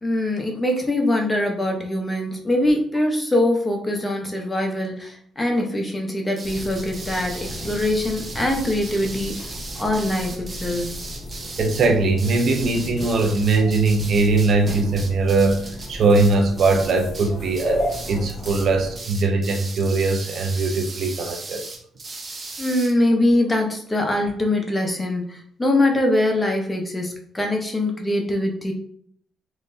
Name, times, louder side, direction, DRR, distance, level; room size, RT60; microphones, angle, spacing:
voice 1, 0.0-9.4 9.8-11.0 22.6-28.7, left 1 dB, 15° left, 2 dB, 0.9 m, -23 dB
sound 1, 6.3-17.3 17.5-18.2 18.4-18.7 18.9-22.9, right 3 dB, 35° right, 0.8 m, -37 dB
sound 2, 6.4-19.0, equal, 50° left, 1.0 m, -34 dB
voice 2, 11.6-17.8 18.1-21.6, right 3 dB, 60° right, 3 dB, 0.7 m, -20 dB
3.7 x 3.2 x 2.7 m, 0.63 s
cardioid pair, 90°, 0 cm